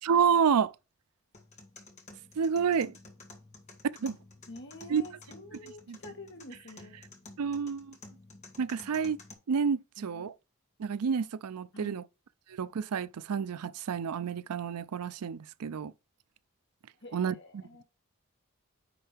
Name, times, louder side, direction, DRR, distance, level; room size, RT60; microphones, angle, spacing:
voice 1, 0.0-0.7 2.4-2.9 4.0-4.1 4.9-5.0 5.9-6.0 7.4-8.0 8.6-9.2 9.5-10.3 10.8-12.0 12.5-15.9 17.1-17.6, right 6 dB, 90° right, 0.4 m, -29 dB
sound 1, 1.3-9.3, left 3 dB, 30° left, 1.7 m, -52 dB
voice 2, 4.5-7.0 10.0-10.3 11.7-12.0 17.0-17.8, left 1 dB, 50° left, 1.9 m, -48 dB
9.9 x 4.5 x 3.4 m
head